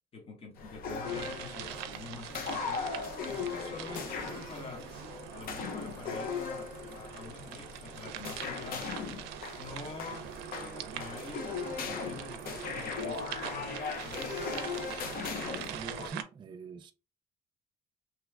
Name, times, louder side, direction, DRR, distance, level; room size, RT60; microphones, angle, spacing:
voice 1, 0.0-4.9 5.3-9.0 9.6-11.5 11.8-14.6, left 4 dB, 35° left, 1.0 m, -47 dB
sound 1, 0.6-16.1, left 5 dB, 60° left, 0.6 m, -38 dB
sound 2, 1.0-16.2, right 10 dB, 90° right, 0.5 m, -43 dB
voice 2, 15.7-16.9, right 5 dB, 30° right, 0.4 m, -43 dB
3.0 x 2.3 x 3.2 m
cardioid pair, 110°, 17 cm